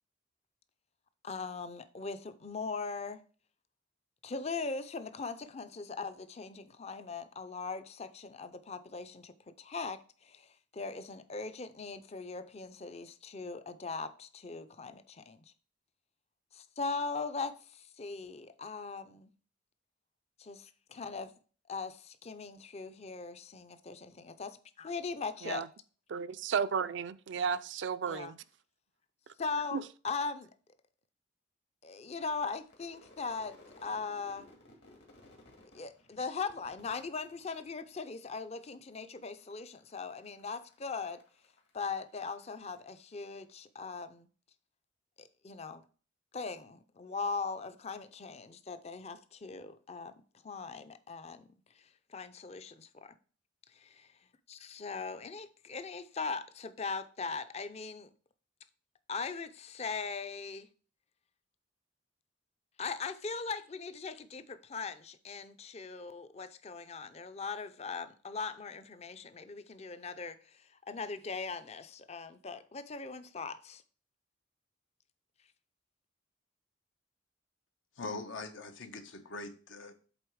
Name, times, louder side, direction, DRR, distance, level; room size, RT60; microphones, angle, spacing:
voice 1, 1.2-3.2 4.2-9.3 9.6-15.4 16.5-19.3 20.4-21.3 21.7-25.7 27.4-27.5 28.1-28.3 29.4-30.5 31.8-33.5 33.8-34.5 35.7-41.2 41.7-44.3 45.2-45.8 46.3-50.1 50.4-51.5 51.7-53.2 53.7-54.0 54.5-58.1 59.1-60.7 62.8-73.8, left 4 dB, 35° left, 0.5 m, -40 dB
voice 2, 26.1-28.4 29.7-29.8, right 6 dB, 70° right, 0.4 m, -33 dB
Crowd / Fireworks, 32.6-38.0 38.3-39.0 39.3-42.8, left 2 dB, 65° left, 2.0 m, -59 dB
voice 3, 78.0-79.9, left 3 dB, 85° left, 1.0 m, -42 dB
8.0 x 3.8 x 4.7 m
head